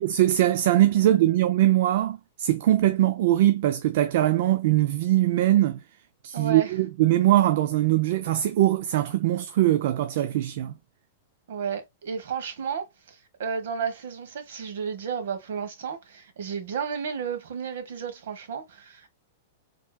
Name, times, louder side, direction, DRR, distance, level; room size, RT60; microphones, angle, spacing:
voice 1, 0.0-5.8 6.2-10.8, right 14 dB, 60° right, 0.4 m, -22 dB
voice 2, 1.0-1.4 6.3-6.7 11.5-19.1, right 6 dB, 75° right, 1.2 m, -33 dB
4.5 x 2.9 x 2.3 m
supercardioid pair, 150°, 0 cm